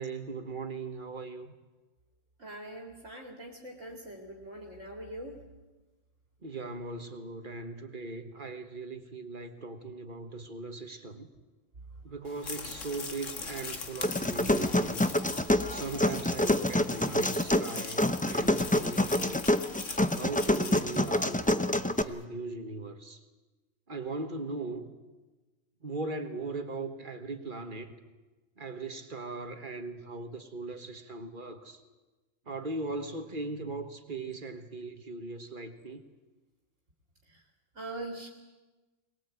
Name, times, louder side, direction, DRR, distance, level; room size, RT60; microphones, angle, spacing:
voice 1, 0.0-1.5 6.4-11.3 12.0-15.2 15.7-19.5 20.1-23.2 23.9-24.9 25.8-27.9 28.6-31.8 32.5-36.0, right 3 dB, 40° right, 7 dB, 1.7 m, -39 dB
voice 2, 2.4-5.4 37.3-37.4 37.7-38.3, right 1 dB, 65° right, 1 dB, 2.7 m, -42 dB
sound 1, 12.3-21.8, left 4 dB, 70° left, 2.0 m, -41 dB
sound 2, 14.0-22.0, left 1 dB, 10° left, 0.5 m, -27 dB
22.5 x 20.0 x 8.4 m, 1.2 s
omnidirectional pair, 1.3 m